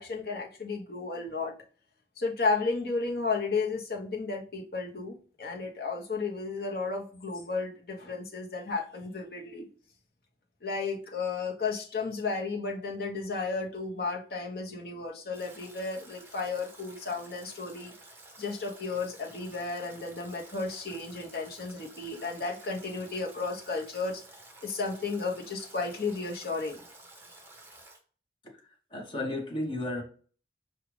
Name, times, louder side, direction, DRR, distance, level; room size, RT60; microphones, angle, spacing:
voice 1, 0.0-1.5 2.2-9.7 10.6-17.9 18.4-24.2 24.6-26.8, left 4 dB, 60° left, 0 dB, 0.9 m, -33 dB
Stream / Drip / Trickle dribble, 15.3-28.0, right 2 dB, 15° right, 0.8 m, -52 dB
voice 2, 28.6-30.0, left 1 dB, 30° left, 0 dB, 1.0 m, -34 dB
4.9 x 2.4 x 3.1 m, 0.42 s
head